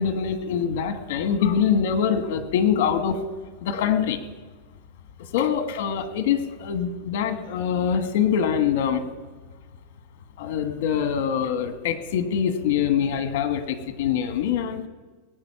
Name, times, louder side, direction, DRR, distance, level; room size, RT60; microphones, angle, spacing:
voice 1, 0.0-3.2 3.6-4.2 5.3-9.0 10.4-14.8, left 8 dB, 60° left, 9 dB, 1.5 m, -24 dB
19.0 x 9.3 x 5.7 m, 1.4 s
supercardioid pair, 175°, 0 cm